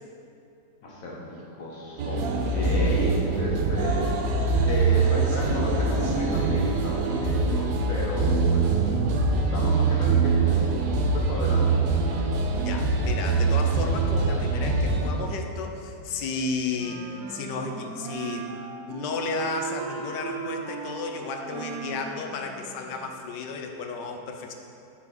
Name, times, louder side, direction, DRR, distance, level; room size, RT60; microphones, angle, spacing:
voice 1, 0.8-4.3 4.6-8.7 9.2-10.6 10.9-11.8, left 1 dB, 55° left, -3 dB, 1.4 m, -32 dB
sound 1, 2.0-15.1, right 4 dB, 90° right, 1.3 m, -23 dB
voice 2, 12.6-17.0 17.3-18.5 18.9-24.5, left 4 dB, 85° left, 4 dB, 1.2 m, -33 dB
Wind instrument woodwind instrument, 16.7-23.4, right 6 dB, 70° right, 1.0 m, -38 dB
5.5 x 4.1 x 5.3 m, 2.6 s
omnidirectional pair, 1.8 m